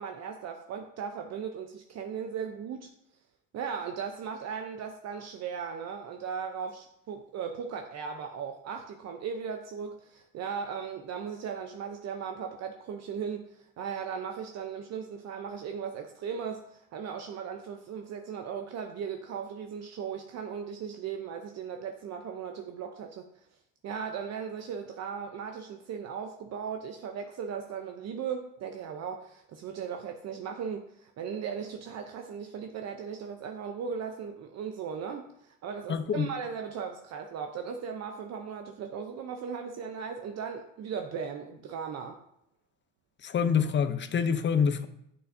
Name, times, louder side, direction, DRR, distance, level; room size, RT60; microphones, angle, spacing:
voice 1, 0.0-2.9 3.5-23.2 23.8-42.2, right 7 dB, 45° right, 4 dB, 0.8 m, -37 dB
voice 2, 35.9-36.3 43.2-44.9, left 7 dB, 30° left, 10 dB, 0.7 m, -26 dB
9.7 x 5.6 x 2.7 m, 0.76 s
supercardioid pair, 95°, 37 cm